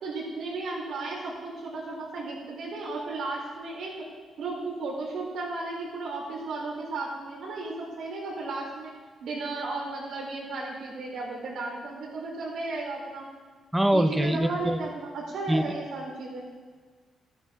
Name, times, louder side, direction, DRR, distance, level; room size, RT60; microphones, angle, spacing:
voice 1, 0.0-4.1 4.4-8.9 9.2-13.3 13.9-16.4, right 3 dB, 75° right, -3 dB, 4.0 m, -34 dB
voice 2, 13.7-14.8 15.5-15.6, right 1 dB, 5° right, 10 dB, 0.6 m, -24 dB
14.0 x 11.0 x 3.7 m, 1.4 s
cardioid pair, 130°, 0 cm